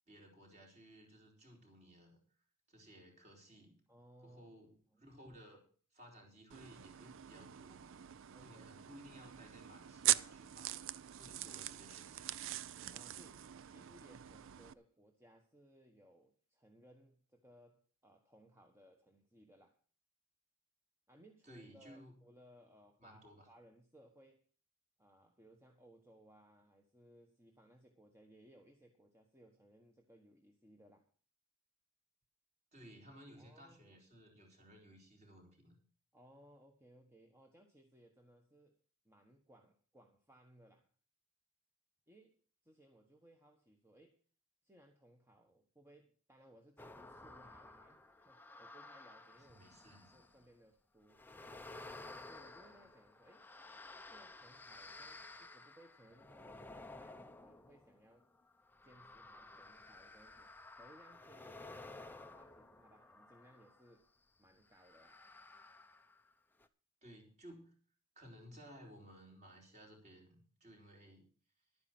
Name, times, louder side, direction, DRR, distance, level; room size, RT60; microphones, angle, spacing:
voice 1, 0.1-2.2 2.7-3.8 4.2-5.6 5.9-8.0 8.4-12.4 21.4-22.1 23.0-23.5 32.7-35.8 49.4-50.1 67.0-67.7 68.2-71.3, equal, 35° right, 1 dB, 4.2 m, -58 dB
voice 2, 3.9-4.6 4.9-5.0 8.3-8.7 11.5-11.7 12.9-19.8 21.1-24.5 25.0-31.1 33.3-34.0 36.1-40.9 42.1-44.2 44.6-49.6 50.1-51.8 52.2-53.5 54.1-58.3 58.8-64.1 64.4-65.2, right 1 dB, 10° right, 3 dB, 1.3 m, -64 dB
sound 1, 6.5-14.7, right 13 dB, 60° right, 0.5 m, -41 dB
sound 2, 46.8-50.5 51.1-63.9 64.7-66.3 66.6-66.7, left 2 dB, 10° left, 0.6 m, -54 dB
11.5 x 9.6 x 6.0 m, 0.41 s
head